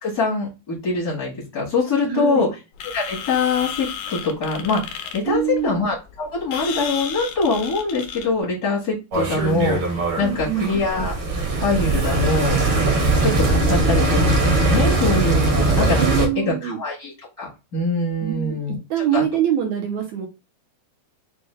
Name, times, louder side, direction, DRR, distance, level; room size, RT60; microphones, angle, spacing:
voice 1, 0.0-2.5 2.9-11.1 11.6-12.6 12.8-19.2, left 3 dB, 65° left, -4 dB, 0.9 m, -24 dB
voice 2, 2.0-2.5 5.2-5.8 10.2-10.7 15.9-16.8 18.2-18.5 18.9-20.3, right 10 dB, 85° right, 2 dB, 1.6 m, -24 dB
sound 1, 2.8-8.4, left 8 dB, 85° left, 1.6 m, -33 dB
sound 2, 9.1-16.3, right 2 dB, 65° right, 1.3 m, -20 dB
6.0 x 2.2 x 3.1 m, 0.27 s
omnidirectional pair, 4.2 m